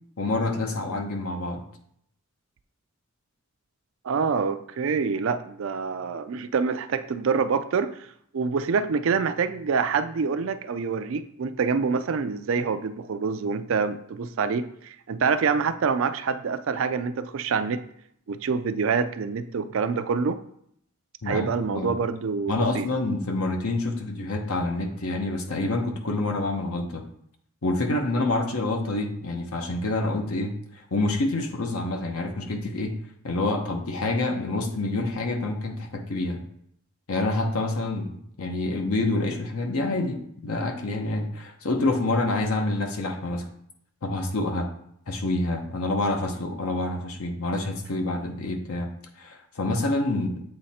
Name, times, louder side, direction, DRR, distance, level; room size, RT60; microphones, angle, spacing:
voice 1, 0.2-1.6 21.2-21.9 22.5-27.0 27.6-30.6 30.9-32.9 33.2-36.4 37.1-43.4 44.0-44.7 45.1-48.9 49.2-50.4, left 2 dB, 85° left, 4 dB, 0.9 m, -27 dB
voice 2, 4.0-8.0 8.3-17.8 18.3-20.4 21.2-22.9, right 5 dB, 65° right, 11 dB, 0.4 m, -26 dB
7.9 x 3.2 x 4.2 m, 0.69 s
head